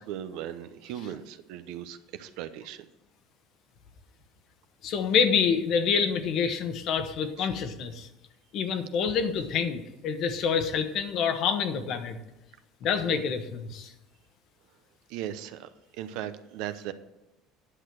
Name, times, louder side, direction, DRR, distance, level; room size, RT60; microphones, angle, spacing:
voice 1, 0.0-2.8 7.4-7.5 15.1-15.7 16.0-16.9, right 11 dB, 75° right, 10 dB, 0.7 m, -37 dB
voice 2, 4.8-8.1 8.5-12.2 12.8-13.9, left 6 dB, 55° left, 9 dB, 1.2 m, -27 dB
9.9 x 6.6 x 6.1 m, 0.99 s
cardioid pair, 125°, 0 cm